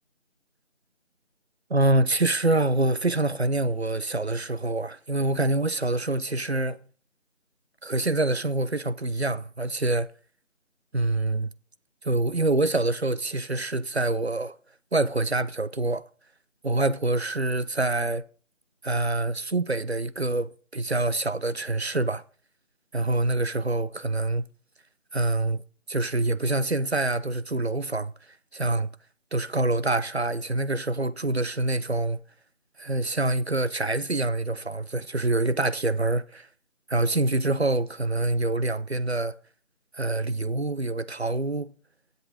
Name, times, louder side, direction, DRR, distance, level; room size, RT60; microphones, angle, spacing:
voice 1, 1.7-6.8 7.8-10.1 10.9-11.5 12.0-14.6 14.9-16.0 16.6-18.2 18.8-22.2 22.9-24.5 25.1-25.6 25.9-28.1 28.5-28.9 29.3-32.2 32.8-36.5 36.9-39.3 40.0-41.7, right 2 dB, 55° right, 0.6 m, -26 dB
10.5 x 7.8 x 4.9 m
figure-of-eight pair, 175°, 39 cm